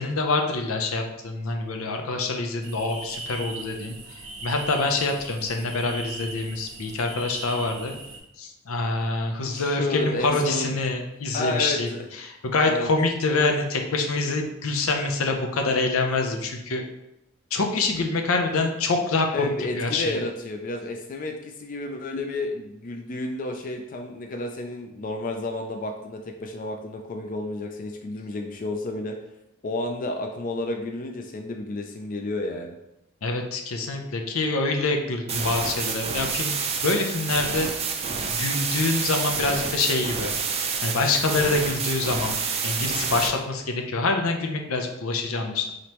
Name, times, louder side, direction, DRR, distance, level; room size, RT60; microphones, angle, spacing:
voice 1, 0.0-7.9 8.4-11.9 12.2-16.8 17.5-20.2 33.2-36.6 36.8-37.7 38.3-40.3 40.8-42.4 42.6-45.7, left 3 dB, 90° left, 3 dB, 0.6 m, -26 dB
sound 1, 2.6-8.2, right 3 dB, 75° right, 0.8 m, -39 dB
voice 2, 9.5-10.7 11.3-12.1 12.6-12.9 19.3-29.2 29.6-32.8, left 2 dB, 40° left, 3 dB, 0.4 m, -31 dB
sound 2, 35.3-43.3, right 5 dB, 30° right, 0.4 m, -28 dB
5.0 x 3.0 x 2.9 m, 0.86 s
head